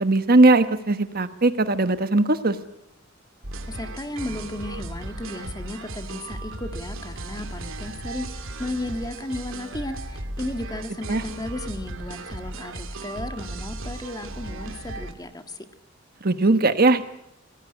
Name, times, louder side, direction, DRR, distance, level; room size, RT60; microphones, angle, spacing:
voice 1, 0.0-2.6 11.1-11.2 16.2-17.1, right 2 dB, 45° right, 11 dB, 1.2 m, -19 dB
sound 1, 3.4-15.1, right 2 dB, 75° right, 2.6 m, -36 dB
voice 2, 3.7-15.7, left 1 dB, 20° left, 8 dB, 1.7 m, -34 dB
25.5 x 19.5 x 9.8 m, 0.81 s
head